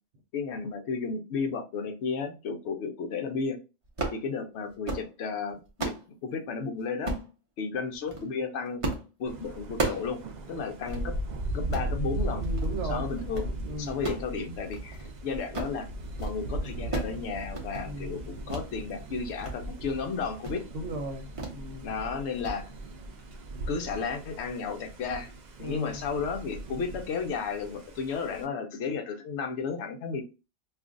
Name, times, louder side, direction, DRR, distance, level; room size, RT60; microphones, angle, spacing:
voice 1, 0.3-3.6 4.1-5.9 6.2-7.1 7.6-8.8 9.2-10.2 10.5-11.1 11.5-12.4 12.9-13.5 13.8-15.9 16.2-20.6 21.8-22.7 23.7-25.3 25.6-30.2, left 5 dB, 60° left, 0.8 m, -33 dB
sound 1, 3.8-4.2 4.7-5.1 5.5-6.1 7.0-7.3 7.9-8.2 8.8-9.1 9.4-10.1 10.5-10.6 10.9-11.0 11.5-11.9 12.4-12.7 13.1-13.5 13.9-15.1 15.4-15.8 16.1-16.4 16.6-17.2 17.4-17.9 18.5-18.7 19.1-19.5 19.9-20.0 20.4-20.6 21.4-21.6 21.9-22.1 22.4-22.6, right 2 dB, 35° right, 0.5 m, -34 dB
Thunder, 9.2-28.4, right 1 dB, 90° right, 0.4 m, -38 dB
voice 2, 12.3-13.1 13.6-14.0 17.8-18.3 20.7-21.9 25.6-26.0, right 1 dB, 65° right, 1.0 m, -37 dB
2.5 x 2.4 x 3.7 m
omnidirectional pair, 1.4 m